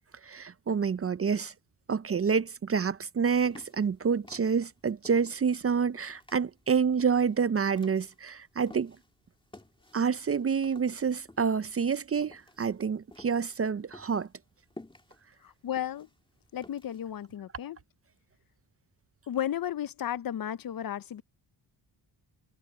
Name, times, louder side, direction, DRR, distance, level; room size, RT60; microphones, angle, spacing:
voice 1, 0.2-1.5 1.9-9.0 9.9-14.3, right 6 dB, 30° right, 0.5 m, -28 dB
sound 1, 3.4-9.1 9.5-17.3, left 2 dB, 10° left, 2.6 m, -53 dB
voice 2, 15.4-16.1 16.5-17.8 19.3-21.2, left 10 dB, 50° left, 0.6 m, -34 dB
cardioid pair, 95°, 47 cm